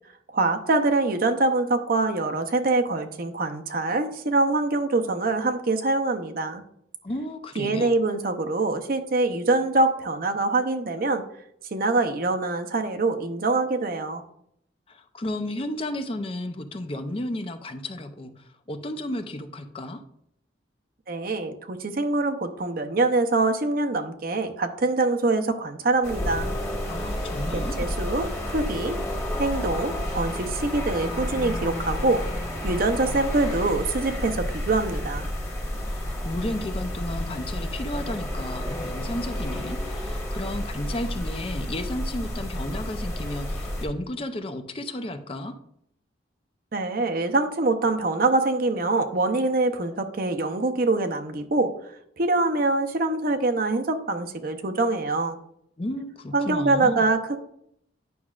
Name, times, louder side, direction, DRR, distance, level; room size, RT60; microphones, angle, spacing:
voice 1, 0.3-6.6 7.6-11.2 11.7-14.2 21.1-26.6 27.5-29.0 29.4-32.2 32.6-35.3 46.7-51.7 52.2-55.4 56.3-57.4, right 2 dB, 50° right, 6 dB, 0.6 m, -24 dB
voice 2, 7.0-7.9 14.9-20.0 26.9-27.9 35.9-45.5 55.8-57.0, left 1 dB, 30° left, 8 dB, 0.5 m, -33 dB
sound 1, 26.0-43.9, left 1 dB, 15° left, 1.2 m, -31 dB
9.3 x 6.0 x 2.4 m, 0.72 s
head